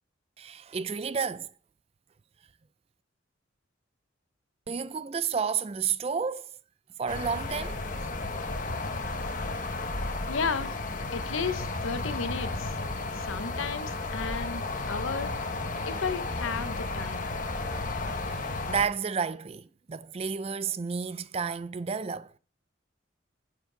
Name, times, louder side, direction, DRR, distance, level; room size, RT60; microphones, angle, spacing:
voice 1, 0.4-1.5 4.7-6.5 7.0-7.8 18.2-22.3, right 6 dB, 30° right, 0.4 m, -31 dB
Night by the beach, 7.1-18.9, left 2 dB, 40° left, 1.0 m, -33 dB
voice 2, 10.3-10.8 11.1-12.8 13.1-15.3 15.8-17.3, left 5 dB, 85° left, 0.8 m, -33 dB
9.6 x 7.6 x 3.9 m
head